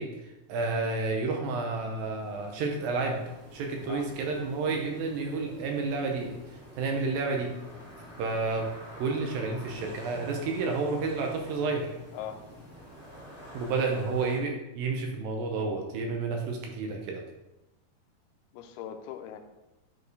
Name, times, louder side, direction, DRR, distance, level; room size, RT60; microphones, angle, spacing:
voice 1, 0.0-3.2 3.5-7.5 8.2-8.7 9.0-12.0 13.5-17.2, right 3 dB, 75° right, 2 dB, 2.3 m, -30 dB
sound 1, 1.7-14.4, left 1 dB, 5° right, 1.4 m, -48 dB
voice 2, 12.1-12.5 18.5-19.4, left 9 dB, 85° left, 6 dB, 2.6 m, -40 dB
10.0 x 4.4 x 3.3 m, 0.98 s
omnidirectional pair, 4.5 m